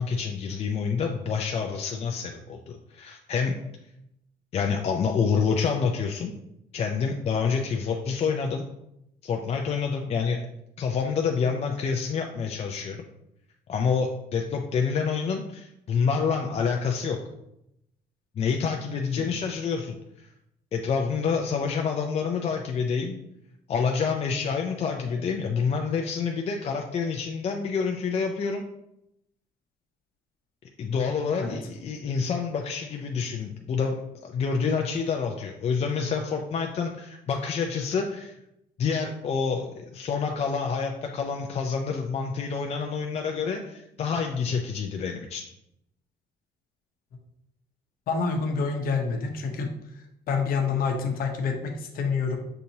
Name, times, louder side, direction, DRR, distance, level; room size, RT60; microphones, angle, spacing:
voice 1, 0.0-3.6 4.5-6.3 6.7-8.6 9.2-10.4 10.8-13.0 13.7-17.2 18.4-20.3 20.7-23.2 23.7-28.6 30.8-34.0 34.2-38.3 38.8-45.4, left 5 dB, 40° left, 2 dB, 0.4 m, -27 dB
voice 2, 48.1-49.7 50.3-52.4, left 5 dB, 60° left, 3 dB, 0.9 m, -27 dB
6.6 x 2.8 x 2.7 m, 0.81 s
cardioid pair, 110°, 17 cm